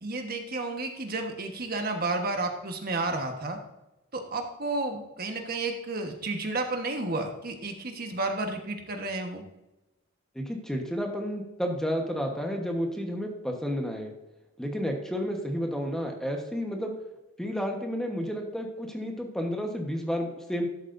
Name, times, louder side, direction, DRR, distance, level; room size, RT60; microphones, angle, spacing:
voice 1, 0.0-3.6 4.1-9.4, right 2 dB, 45° right, 4 dB, 1.3 m, -31 dB
voice 2, 10.3-14.1 14.6-16.9 17.4-20.6, equal, 5° left, 2 dB, 1.2 m, -31 dB
13.0 x 8.3 x 2.6 m, 0.96 s
head